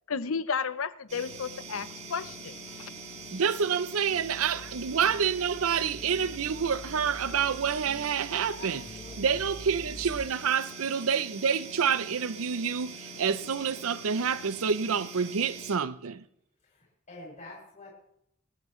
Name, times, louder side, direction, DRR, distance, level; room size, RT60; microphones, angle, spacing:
voice 1, 0.1-2.5 2.8-2.9, left 5 dB, 80° left, 0.7 m, -33 dB
sound 1, 1.1-15.8, right 3 dB, 35° right, 2.1 m, -44 dB
sound 2, 1.2-10.2, left 1 dB, 5° right, 2.9 m, -48 dB
voice 2, 3.3-8.8 9.2-16.2, right 6 dB, 90° right, 0.6 m, -28 dB
voice 3, 8.6-9.1 17.1-17.9, left 2 dB, 40° left, 6.3 m, -46 dB
27.5 x 11.0 x 3.2 m
head